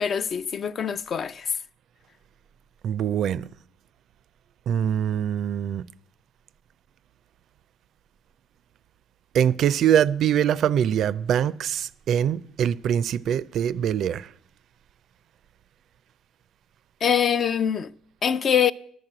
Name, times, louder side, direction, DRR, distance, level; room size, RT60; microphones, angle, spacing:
voice 1, 0.0-1.5 17.0-17.9 18.2-18.7, left 8 dB, 50° left, 0.4 m, -23 dB
voice 2, 2.8-3.4 4.7-5.9 9.3-14.3, right 9 dB, 60° right, 0.4 m, -23 dB
11.0 x 5.9 x 7.8 m
supercardioid pair, 75°, 0 cm